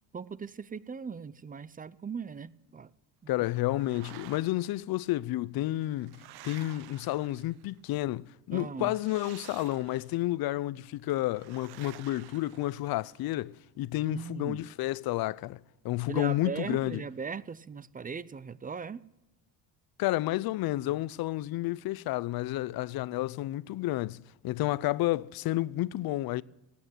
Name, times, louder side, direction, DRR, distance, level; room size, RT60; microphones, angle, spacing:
voice 1, 0.1-2.9 3.2-3.3 8.5-9.0 14.0-14.6 16.1-19.0, right 5 dB, 20° right, 0.5 m, -38 dB
voice 2, 3.3-15.6 15.8-17.0 20.0-26.4, left 16 dB, 55° left, 0.6 m, -31 dB
sound 1, 3.6-4.8 5.6-7.8 8.9-10.3 11.3-13.2, right 15 dB, 60° right, 0.7 m, -52 dB
17.0 x 8.6 x 9.1 m
cardioid pair, 95°, 44 cm